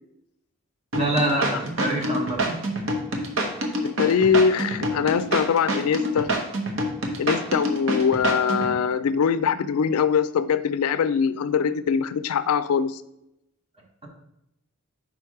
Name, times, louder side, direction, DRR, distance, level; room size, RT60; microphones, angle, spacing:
voice 1, 0.9-2.6, right 2 dB, 30° right, -1 dB, 1.2 m, -25 dB
sound 1, 0.9-8.7, right 1 dB, 70° right, 0.9 m, -26 dB
voice 2, 3.8-6.3 7.2-13.0, left 6 dB, 90° left, 14 dB, 0.4 m, -22 dB
5.0 x 4.6 x 4.7 m, 0.84 s
head